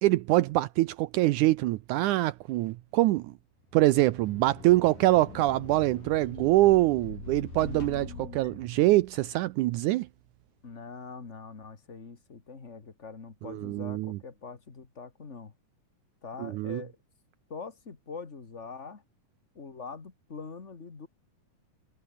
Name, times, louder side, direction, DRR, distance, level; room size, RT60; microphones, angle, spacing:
voice 1, 0.0-3.3 3.7-10.1 13.4-14.2 16.4-16.8, right 17 dB, 75° right, 2.0 m, -24 dB
sound 1, 3.7-9.3, left 4 dB, 90° left, 8.8 m, -44 dB
voice 2, 7.6-8.4 10.6-15.5 16.2-17.0 17.5-19.0 19.5-21.1, left 5 dB, 25° left, 1.8 m, -43 dB
omnidirectional pair, 3.7 m